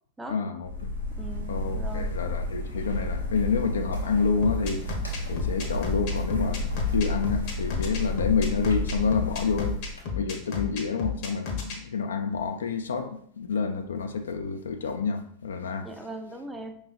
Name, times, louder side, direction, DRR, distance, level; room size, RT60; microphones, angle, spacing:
voice 1, 0.3-0.9 1.5-5.0 5.3-9.8 10.1-15.9, left 5 dB, 70° left, 0.4 m, -28 dB
sound 1, 0.6-10.0, left 1 dB, 85° left, 1.0 m, -31 dB
voice 2, 1.2-2.1 15.8-16.8, right 2 dB, 10° right, 0.5 m, -39 dB
sound 2, 4.4-11.8, left 5 dB, 50° left, 0.9 m, -32 dB
5.2 x 3.1 x 2.4 m
figure-of-eight pair, 90°, 0 cm